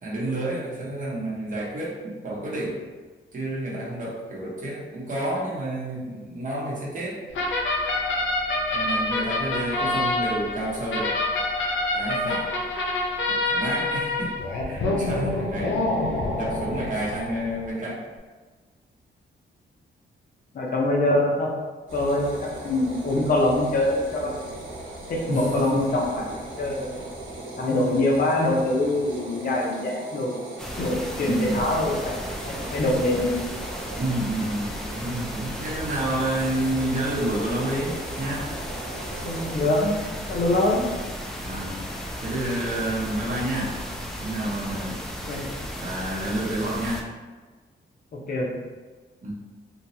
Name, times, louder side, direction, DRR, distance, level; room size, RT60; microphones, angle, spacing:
voice 1, 0.0-2.9 3.3-7.2 8.7-11.2 11.9-12.5 13.3-14.3 14.6-15.8 16.4-18.0 25.3-25.8 31.2-31.7 34.0-38.5 41.4-41.8 42.2-43.8 44.2-45.0 45.8-47.0 49.2-49.3, right 1 dB, 45° right, -6 dB, 0.9 m, -29 dB
sound 1, 7.3-17.7, left 2 dB, 90° left, 0.6 m, -26 dB
voice 2, 20.5-21.5 21.9-24.4 25.1-26.3 26.6-27.0 27.6-30.4 30.8-32.2 32.4-33.3 39.2-40.0 40.3-40.8 45.3-45.5 48.1-48.5, left 1 dB, 50° left, -2 dB, 0.7 m, -24 dB
sound 2, 21.9-39.6, right 2 dB, 90° right, 0.9 m, -39 dB
sound 3, 30.6-47.0, equal, ahead, 0.3 m, -35 dB
2.9 x 2.2 x 2.7 m, 1.3 s
cardioid pair, 105°, 20 cm